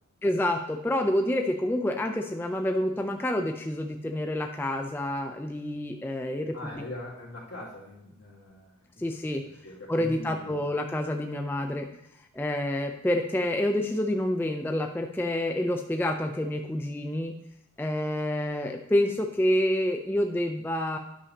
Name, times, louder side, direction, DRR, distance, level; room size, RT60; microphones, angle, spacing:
voice 1, 0.2-6.8 9.0-9.4 9.9-11.9 12.3-17.4 17.8-21.0, left 1 dB, 5° left, 4 dB, 0.6 m, -28 dB
voice 2, 6.5-10.7, left 1 dB, 50° left, -5 dB, 2.7 m, -42 dB
10.0 x 6.8 x 2.9 m, 0.81 s
wide cardioid pair, 60°, 31 cm